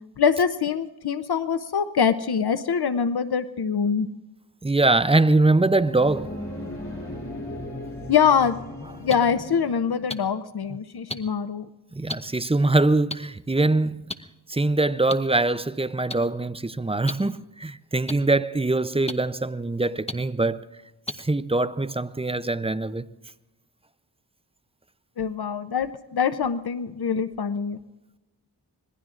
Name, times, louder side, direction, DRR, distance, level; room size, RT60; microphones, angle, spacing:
voice 1, 0.2-4.1 8.1-8.6 8.9-11.7 25.2-27.8, left 7 dB, 70° left, 0.7 m, -24 dB
voice 2, 4.6-6.3 11.9-14.0 14.5-20.7 21.2-23.1, right 2 dB, 15° right, 0.5 m, -23 dB
sound 1, 5.5-10.1, left 1 dB, 45° left, 3.3 m, -37 dB
sound 2, 9.1-9.2 10.1-10.2 11.1-11.2 12.1-12.2 13.1-13.2 14.1-14.2 15.1-15.2 16.1-16.2 17.1-17.2 18.1-18.2 19.1-19.2 20.1-20.2 21.1-21.2 22.1-22.2, left 2 dB, 15° left, 0.9 m, -30 dB
26.0 x 20.5 x 2.5 m
wide cardioid pair, 65°, 39 cm